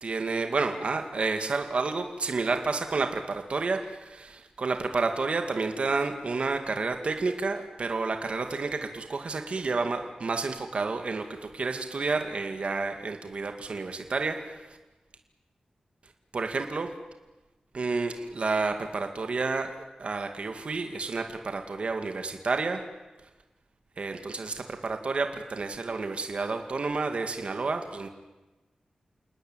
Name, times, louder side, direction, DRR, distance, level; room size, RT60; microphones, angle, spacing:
voice 1, 0.0-11.3 11.5-14.8 16.3-16.9 17.7-22.8 24.0-28.1, right 3 dB, 55° right, 6 dB, 2.3 m, -30 dB
29.0 x 19.5 x 9.3 m, 1.1 s
wide cardioid pair, 135°, 2 cm